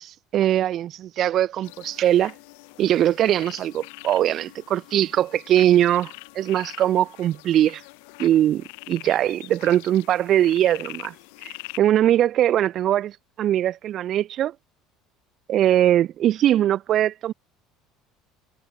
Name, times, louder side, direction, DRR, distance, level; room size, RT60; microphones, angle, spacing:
voice 1, 0.0-2.3 2.8-7.8 8.2-11.1 11.4-13.1 13.4-14.5 15.5-17.3, right 11 dB, 35° right, 0.8 m, -21 dB
sound 1, 1.6-11.8, left 34 dB, 85° left, 3.6 m, -43 dB
cardioid pair, 180°, 0 cm